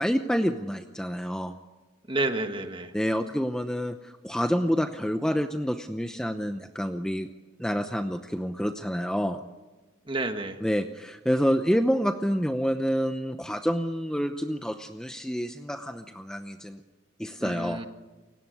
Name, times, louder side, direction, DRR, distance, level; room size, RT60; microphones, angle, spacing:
voice 1, 0.0-1.5 2.9-7.3 7.6-9.4 10.6-16.8 17.2-17.8, equal, 5° left, 7 dB, 0.8 m, -28 dB
voice 2, 2.1-2.9 10.1-10.6 17.4-17.9, right 2 dB, 25° right, 7 dB, 1.5 m, -30 dB
29.5 x 17.0 x 9.4 m, 1.2 s
head